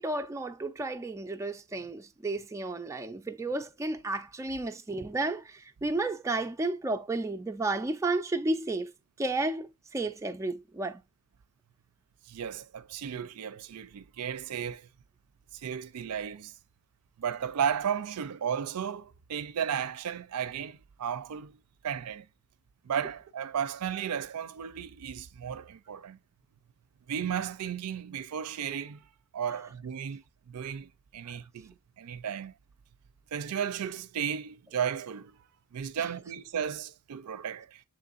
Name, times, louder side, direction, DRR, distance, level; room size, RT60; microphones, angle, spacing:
voice 1, 0.0-8.9 9.2-11.0 31.3-31.4, right 2 dB, 15° right, 0.3 m, -32 dB
voice 2, 12.3-14.9 15.5-16.5 17.2-22.3 22.8-26.2 27.1-29.1 29.3-32.5 33.3-35.4 35.7-37.8, right 8 dB, 85° right, 0.4 m, -34 dB
6.9 x 3.1 x 2.4 m
head